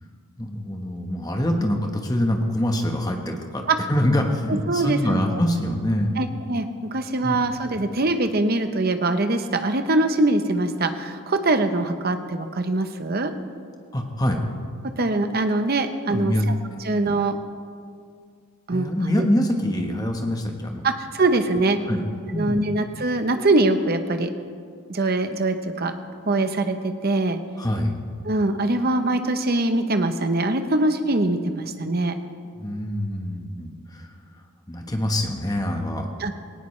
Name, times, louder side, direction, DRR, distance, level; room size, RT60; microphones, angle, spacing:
voice 1, 0.4-6.2 7.2-7.4 13.9-14.4 16.1-16.5 18.7-20.8 21.9-22.0 22.3-22.6 27.6-27.9 32.6-34.1 34.7-36.1, left 1 dB, 15° left, 3 dB, 1.2 m, -25 dB
voice 2, 4.7-5.4 6.2-13.3 15.0-16.4 16.8-17.4 18.7-19.3 20.8-21.8 22.3-24.3 24.9-26.0 26.3-27.4 28.2-32.2 36.2-36.4, right 2 dB, 45° right, 8 dB, 0.8 m, -23 dB
18.0 x 18.0 x 3.2 m, 2.2 s
head